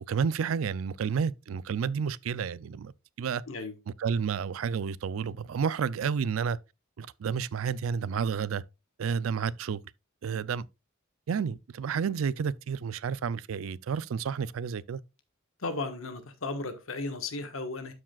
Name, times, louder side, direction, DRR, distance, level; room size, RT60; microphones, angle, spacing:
voice 1, 0.1-2.9 3.2-3.4 4.0-6.6 7.0-8.6 9.0-9.8 10.2-10.7 11.3-15.0, right 6 dB, 80° right, 0.4 m, -30 dB
voice 2, 15.6-17.9, left 3 dB, 80° left, 1.3 m, -35 dB
13.0 x 4.8 x 2.3 m
head